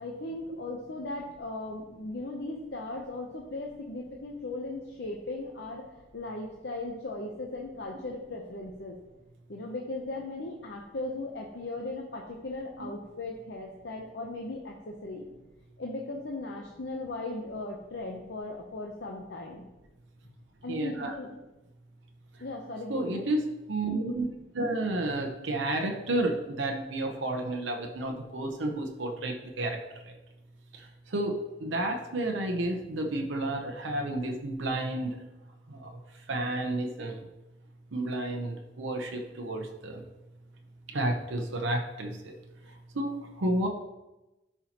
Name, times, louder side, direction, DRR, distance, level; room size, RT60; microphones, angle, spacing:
voice 1, 0.0-5.9 6.1-9.0 9.5-15.3 15.8-19.6 20.6-21.3 22.4-23.2, left 2 dB, 65° left, 0 dB, 0.8 m, -37 dB
voice 2, 20.7-21.1 22.9-23.4 23.7-24.3 24.5-29.8 30.0-30.1 30.7-35.2 35.7-35.9 36.3-37.2 37.9-40.0 40.9-42.3 42.9-43.7, right 1 dB, 90° right, 3 dB, 0.8 m, -31 dB
11.0 x 5.5 x 3.0 m, 1.0 s
head